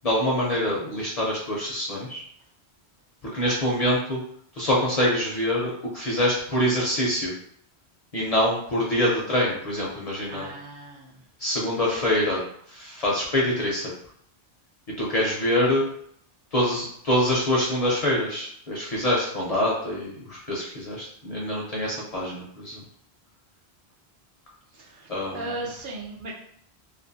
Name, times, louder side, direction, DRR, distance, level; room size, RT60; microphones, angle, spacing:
voice 1, 0.0-2.2 3.3-4.2 4.6-7.3 8.1-10.5 11.4-12.4 12.7-13.9 15.0-15.8 16.5-22.8 25.1-25.6, left 1 dB, 45° left, -4 dB, 0.5 m, -25 dB
voice 2, 10.3-11.1 24.7-25.1 25.3-26.3, right 2 dB, 60° right, -3 dB, 0.7 m, -36 dB
2.6 x 2.4 x 2.6 m, 0.67 s
omnidirectional pair, 1.1 m